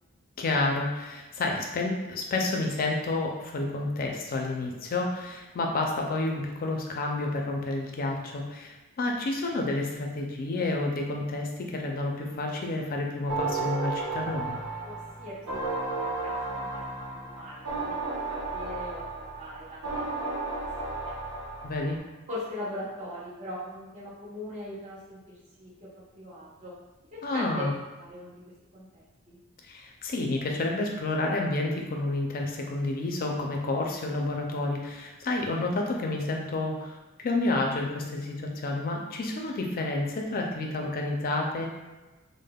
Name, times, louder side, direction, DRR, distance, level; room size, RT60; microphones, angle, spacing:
voice 1, 0.4-14.6 21.6-22.0 27.2-27.7 29.6-41.7, left 2 dB, 40° left, 1 dB, 0.4 m, -30 dB
sound 1, 13.3-22.0, right 3 dB, 85° right, 0.7 m, -33 dB
voice 2, 14.8-16.7 17.1-18.0 18.3-20.4 20.8-21.1 22.3-26.7 27.3-27.7 28.0-28.4 28.7-29.4, left 1 dB, 30° right, -8 dB, 0.6 m, -41 dB
3.4 x 2.1 x 2.2 m, 1.2 s
head